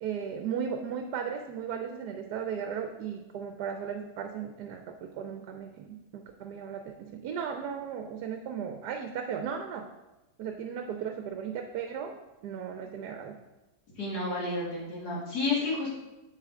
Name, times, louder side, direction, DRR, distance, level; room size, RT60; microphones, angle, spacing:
voice 1, 0.0-9.9 10.4-13.4, right 7 dB, 75° right, 5 dB, 1.2 m, -36 dB
voice 2, 14.0-15.9, left 3 dB, 70° left, -5 dB, 2.5 m, -31 dB
7.4 x 6.6 x 3.7 m, 1.0 s
omnidirectional pair, 1.8 m